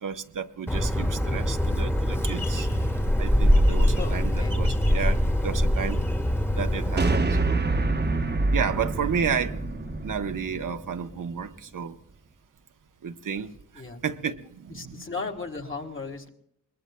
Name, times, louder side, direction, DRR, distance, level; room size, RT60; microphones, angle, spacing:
voice 1, 0.0-2.7 3.2-6.0 6.5-7.6 8.5-9.6 10.0-12.0 13.0-15.0, right 7 dB, 75° right, 7 dB, 1.0 m, -32 dB
Bird, 0.7-7.2, equal, 5° left, 1.3 m, -23 dB
voice 2, 4.0-4.6 6.0-6.3 13.8-14.0 14.7-16.3, left 4 dB, 40° left, 3 dB, 1.8 m, -36 dB
sound 1, 7.0-11.4, right 2 dB, 35° right, 0.9 m, -27 dB
23.0 x 21.0 x 2.2 m, 0.70 s
wide cardioid pair, 105°, 32 cm